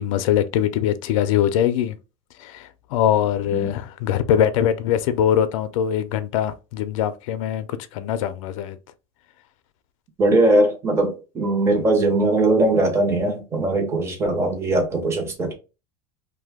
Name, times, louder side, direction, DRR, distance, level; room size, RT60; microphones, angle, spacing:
voice 1, 0.0-2.0 2.4-8.8, left 10 dB, 85° left, 0.4 m, -22 dB
voice 2, 10.2-15.5, right 2 dB, 15° right, 0.7 m, -20 dB
2.7 x 2.2 x 3.4 m
cardioid pair, 165°, 16 cm